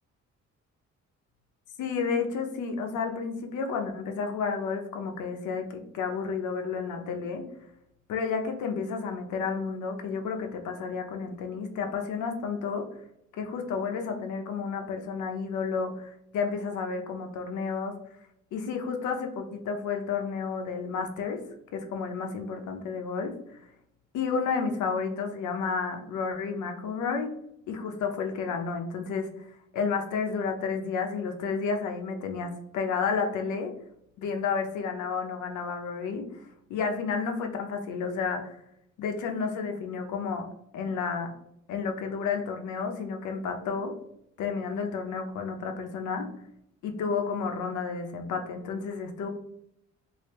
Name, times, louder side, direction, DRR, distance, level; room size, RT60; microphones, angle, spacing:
voice 1, 1.8-7.4 8.1-12.8 13.4-18.0 18.5-21.4 21.7-23.3 24.1-27.3 27.7-29.3 29.7-33.7 34.2-36.3 36.7-38.6 39.0-40.5 40.7-41.3 41.7-43.9 44.4-46.3 46.8-49.3, left 5 dB, 80° left, 4 dB, 0.7 m, -31 dB
3.0 x 2.6 x 3.3 m, 0.77 s
cardioid pair, 90°, 30 cm